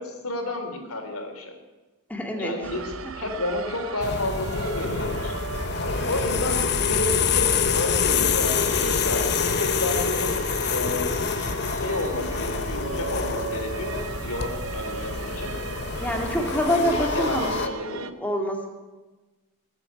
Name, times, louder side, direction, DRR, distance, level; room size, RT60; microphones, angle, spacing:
voice 1, 0.0-1.5 2.4-5.3 5.8-10.4 10.7-11.0 11.8-15.5 16.7-18.1, left 2 dB, 85° left, 4 dB, 3.4 m, -31 dB
voice 2, 2.1-2.8 3.0-3.1 6.2-6.3 16.0-17.7 18.2-18.7, equal, 5° left, 2 dB, 2.2 m, -26 dB
sound 1, 2.6-18.1, right 4 dB, 70° right, 0.8 m, -36 dB
sound 2, 4.0-17.7, left 6 dB, 50° left, 0.9 m, -26 dB
19.0 x 8.0 x 9.2 m, 1.2 s
head